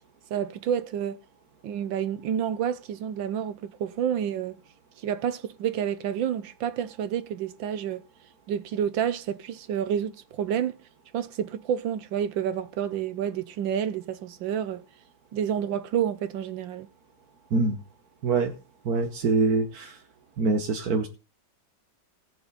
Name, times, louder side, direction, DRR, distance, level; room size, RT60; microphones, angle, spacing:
voice 1, 0.3-1.2 1.6-4.6 5.0-8.0 8.5-10.9 11.1-14.8 15.3-16.9, right 9 dB, 75° right, 1.5 m, -29 dB
voice 2, 18.2-18.5 18.8-20.0 20.4-21.1, right 3 dB, 55° right, 1.5 m, -24 dB
18.0 x 6.9 x 4.0 m
omnidirectional pair, 2.1 m